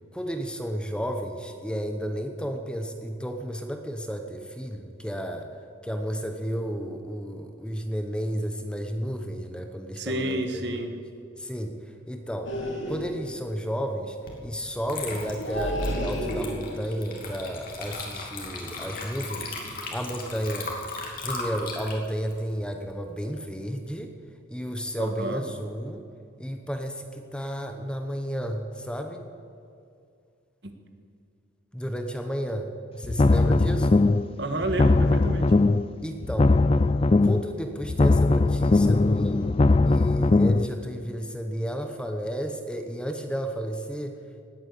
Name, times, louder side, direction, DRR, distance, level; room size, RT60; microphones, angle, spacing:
voice 1, 0.1-5.5 5.8-10.9 11.4-11.7 12.1-12.5 12.9-14.2 14.4-19.5 19.9-20.7 21.2-24.1 24.5-26.0 26.4-29.2 31.7-34.0 36.0-36.6 37.2-44.1, equal, 5° left, 5 dB, 0.9 m, -32 dB
voice 2, 10.0-10.9 25.0-25.4 30.6-30.7 34.4-35.5, right 1 dB, 55° right, 6 dB, 1.5 m, -30 dB
sound 1, 12.5-13.3 15.4-16.9 18.6-19.0 19.3-19.7 20.0-20.2, equal, 70° left, 2.7 m, -32 dB
Water / Liquid, 14.3-14.4 14.8-23.4, left 3 dB, 45° left, 2.8 m, -37 dB
sound 2, 33.0-34.3 34.6-35.9 36.2-37.5 37.8-40.7, left 3 dB, 30° left, 0.3 m, -20 dB
19.0 x 8.9 x 8.5 m, 2.4 s
head